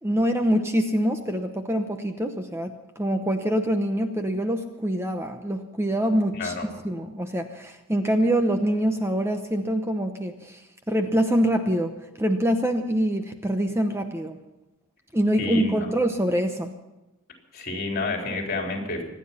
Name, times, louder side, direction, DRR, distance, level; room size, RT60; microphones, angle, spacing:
voice 1, 0.0-6.6 6.8-14.4 15.1-16.7, equal, 10° right, 6 dB, 0.9 m, -25 dB
voice 2, 6.3-6.6 15.4-15.9 17.5-19.0, left 3 dB, 45° left, 1 dB, 3.6 m, -29 dB
25.0 x 9.7 x 5.7 m, 0.99 s
head